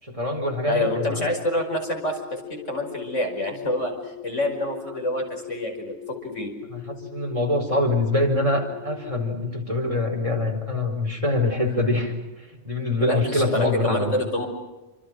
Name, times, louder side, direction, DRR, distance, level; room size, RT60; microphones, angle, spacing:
voice 1, 0.0-1.3 6.7-12.1 12.6-14.1, left 2 dB, 25° right, 2 dB, 4.8 m, -24 dB
voice 2, 0.7-6.5 13.0-14.5, left 1 dB, 70° left, 3 dB, 5.8 m, -27 dB
sound 1, 0.7-9.4, left 10 dB, 50° left, 7.4 m, -41 dB
29.0 x 25.5 x 6.3 m, 1.1 s
omnidirectional pair, 1.3 m